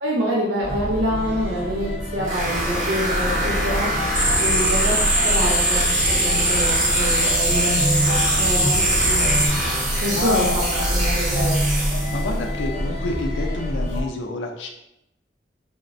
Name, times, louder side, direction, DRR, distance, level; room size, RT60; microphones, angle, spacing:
voice 1, 0.0-3.9 4.4-4.9 5.2-5.9 6.2-9.4 10.0-11.8, equal, 75° right, -5 dB, 0.7 m, -26 dB
sound 1, 0.6-14.0, equal, 45° left, 0.6 m, -26 dB
sound 2, 2.2-12.4, right 1 dB, 40° right, 0.8 m, -26 dB
sound 3, 4.1-9.5, right 1 dB, 10° right, 0.3 m, -21 dB
voice 2, 9.7-10.6 12.1-14.7, left 3 dB, 90° left, 2 dB, 0.4 m, -28 dB
3.9 x 2.1 x 2.5 m, 0.85 s
head